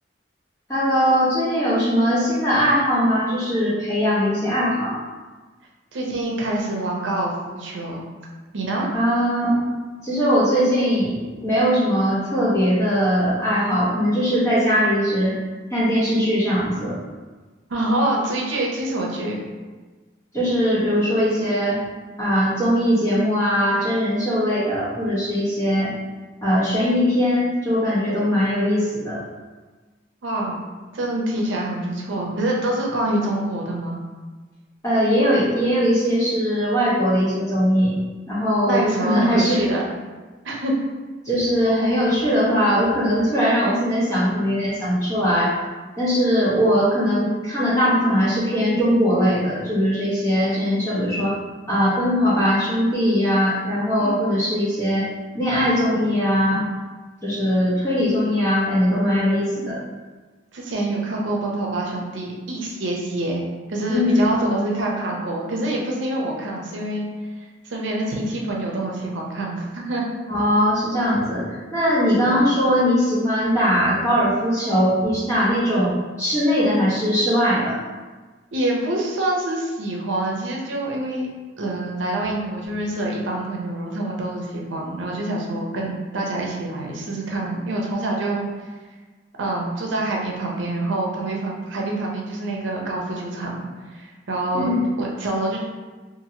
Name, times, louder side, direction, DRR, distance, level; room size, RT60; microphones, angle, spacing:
voice 1, 0.7-4.9 8.9-9.6 10.0-15.4 15.7-17.0 20.3-21.8 22.2-25.9 26.4-29.2 34.8-37.9 38.3-39.6 41.2-45.5 46.0-51.3 51.7-55.1 55.3-56.7 57.2-59.8 63.9-64.3 70.3-77.8 94.5-94.8, equal, 15° left, -9 dB, 1.0 m, -20 dB
voice 2, 5.9-8.1 8.5-8.9 17.7-19.4 30.2-30.6 30.9-34.0 38.7-39.8 40.4-40.7 54.0-54.2 60.5-63.4 63.7-67.0 67.6-70.0 72.2-72.4 78.5-81.3 81.6-88.4 89.4-93.7 93.9-94.7 95.0-95.6, right 1 dB, 90° right, -2 dB, 0.6 m, -26 dB
2.8 x 2.6 x 2.8 m, 1.3 s
head